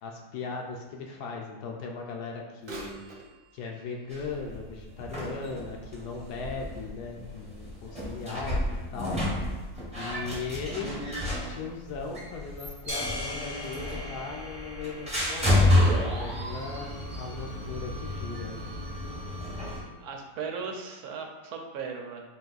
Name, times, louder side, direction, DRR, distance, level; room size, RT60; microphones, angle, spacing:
voice 1, 0.0-3.0 3.5-9.2 9.9-10.9 11.5-18.6, left 4 dB, 75° left, 0 dB, 1.1 m, -38 dB
Bird vocalization bird call bird song / Telephone, 2.6-6.4 7.0-7.1 7.9-8.0 8.6-8.7, right 2 dB, 50° right, 0.6 m, -47 dB
sound 1, 4.1-19.8, left 1 dB, 5° right, 0.5 m, -30 dB
sound 2, 12.9-17.2, left 1 dB, 45° left, 0.4 m, -40 dB
voice 2, 20.0-22.2, right 5 dB, 70° right, 2 dB, 1.0 m, -37 dB
4.1 x 2.6 x 3.9 m, 1.3 s
omnidirectional pair, 1.8 m